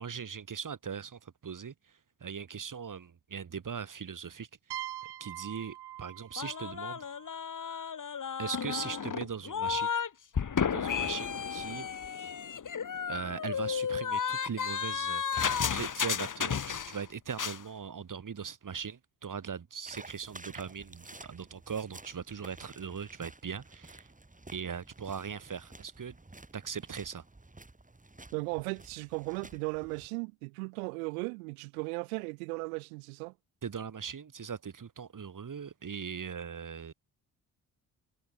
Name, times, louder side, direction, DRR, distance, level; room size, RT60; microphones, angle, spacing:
voice 1, 0.0-4.5 5.2-7.1 8.4-9.9 10.7-11.9 13.1-24.1 24.5-26.2 26.5-27.2 33.6-36.9, right 6 dB, 45° right, 6.0 m, -40 dB
sound 1, 4.7-8.3, right 14 dB, 65° right, 2.2 m, -44 dB
sound 2, 6.4-10.1 10.3-17.0 17.3-17.6, left 7 dB, 45° left, 3.9 m, -33 dB
sound 3, 19.9-30.1, right 2 dB, 20° right, 6.6 m, -52 dB
voice 2, 28.3-33.3, right 32 dB, 80° right, 1.7 m, -36 dB
hypercardioid pair, 45°, 43 cm